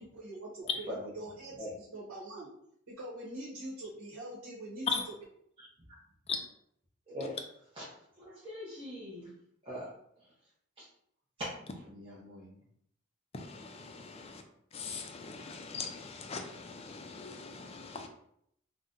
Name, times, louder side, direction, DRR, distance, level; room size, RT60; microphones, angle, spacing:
voice 1, 0.2-2.5 2.9-5.0, right 1 dB, 85° right, 0.9 m, -44 dB
voice 2, 7.1-7.4 8.2-9.3 9.7-9.9 11.9-12.5, left 1 dB, 25° right, 0.7 m, -42 dB
voice 3, 13.3-14.4 14.7-18.1, left 4 dB, 30° left, 0.3 m, -41 dB
2.6 x 2.1 x 3.7 m
head